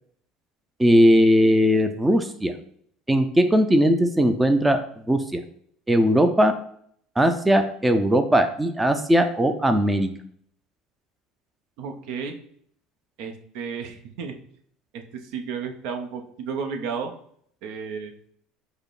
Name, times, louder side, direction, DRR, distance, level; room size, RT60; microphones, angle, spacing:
voice 1, 0.8-2.5 3.1-5.4 5.9-6.5 7.2-10.1, equal, 10° right, 7 dB, 0.4 m, -19 dB
voice 2, 11.8-12.4 13.2-14.3 14.9-17.1 17.6-18.1, right 6 dB, 70° right, 5 dB, 0.7 m, -33 dB
5.0 x 2.1 x 4.7 m, 0.64 s
supercardioid pair, 95°, 0 cm